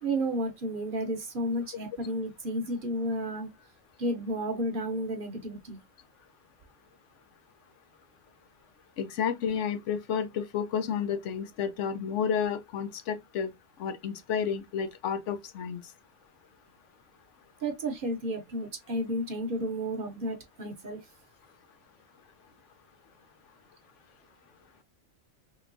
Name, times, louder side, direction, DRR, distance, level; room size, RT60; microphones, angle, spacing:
voice 1, 0.0-3.5 4.0-5.8 17.6-21.0, right 1 dB, 50° right, 0.8 m, -32 dB
voice 2, 9.0-13.5 13.8-15.8, left 7 dB, 80° left, 0.9 m, -31 dB
3.3 x 2.9 x 2.4 m
omnidirectional pair, 1.3 m